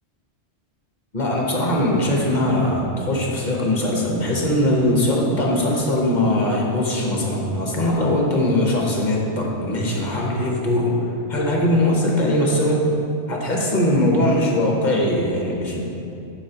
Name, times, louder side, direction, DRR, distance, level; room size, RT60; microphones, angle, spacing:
voice 1, 1.1-12.9 13.3-15.8, left 1 dB, 40° left, -2 dB, 1.1 m, -21 dB
8.5 x 6.7 x 2.9 m, 2.9 s
omnidirectional pair, 1.2 m